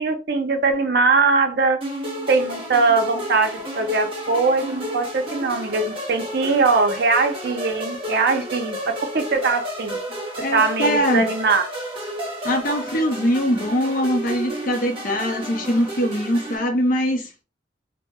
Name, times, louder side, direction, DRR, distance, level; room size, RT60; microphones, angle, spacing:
voice 1, 0.0-1.8 2.3-10.0 10.5-11.7, right 4 dB, 55° right, 0.5 m, -21 dB
sound 1, 1.8-16.6, equal, 30° right, 0.9 m, -32 dB
voice 2, 10.4-11.3 12.4-17.3, equal, 45° left, 0.6 m, -22 dB
2.0 x 2.0 x 3.4 m
head